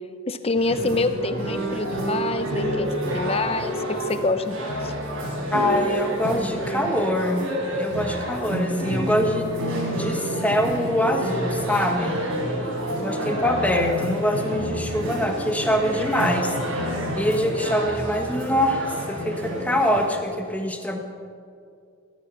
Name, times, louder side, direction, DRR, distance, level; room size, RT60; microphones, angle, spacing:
voice 1, 0.3-4.6 4.8-4.9 12.9-13.0, left 3 dB, 30° left, 10 dB, 0.8 m, -26 dB
sound 1, 0.6-20.1, equal, 80° right, 4.4 m, -28 dB
voice 2, 5.5-7.5 7.8-9.5 9.9-12.2 13.0-16.5 16.8-21.0, equal, 5° left, 3 dB, 1.3 m, -24 dB
16.5 x 13.5 x 6.0 m, 2.3 s
head